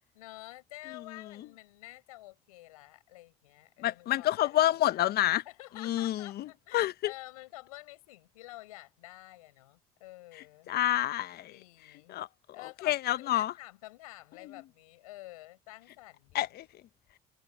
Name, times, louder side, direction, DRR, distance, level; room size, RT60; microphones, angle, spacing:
voice 1, 0.1-5.0 5.5-10.7 11.5-12.2 12.5-16.5, left 18 dB, 85° left, 5.9 m, -49 dB
voice 2, 3.8-5.4 5.8-7.1 10.7-11.5 12.1-12.3 12.8-13.5 16.3-16.7, left 13 dB, 65° left, 1.4 m, -28 dB
hypercardioid pair, 50°, 18 cm